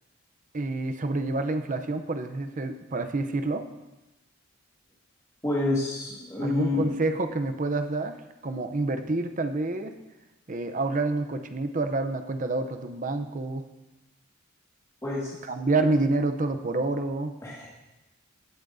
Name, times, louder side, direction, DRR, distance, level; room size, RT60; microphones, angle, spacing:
voice 1, 0.5-3.7 6.4-8.2 8.4-9.9 10.5-13.6 15.5-17.3, right 2 dB, 40° right, 8 dB, 0.6 m, -28 dB
voice 2, 5.4-6.9 15.0-15.3 17.4-17.7, left 2 dB, 15° left, -6 dB, 1.7 m, -28 dB
16.0 x 8.3 x 2.7 m, 1.0 s
head